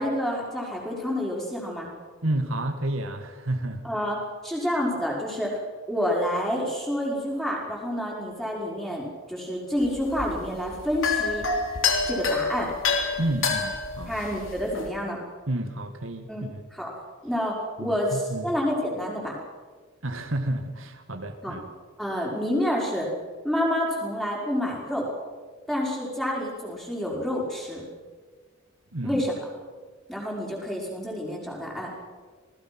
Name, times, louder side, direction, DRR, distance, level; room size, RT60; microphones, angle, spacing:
voice 1, 0.0-1.9 3.8-4.2 4.4-5.6 5.9-11.5 12.1-12.7 14.1-15.2 16.3-16.5 16.7-16.9 17.2-19.4 21.4-21.6 22.0-23.1 23.4-25.1 25.7-27.8 29.0-29.3 30.1-31.9, equal, ahead, -3 dB, 5.2 m, -28 dB
voice 2, 2.2-3.8 13.2-14.1 15.5-16.6 17.8-18.5 20.0-21.6 28.9-29.2, right 1 dB, 75° right, 6 dB, 2.0 m, -30 dB
sound 1, 9.8-14.9, left 4 dB, 75° left, 3.3 m, -28 dB
27.0 x 19.5 x 6.1 m, 1.5 s
head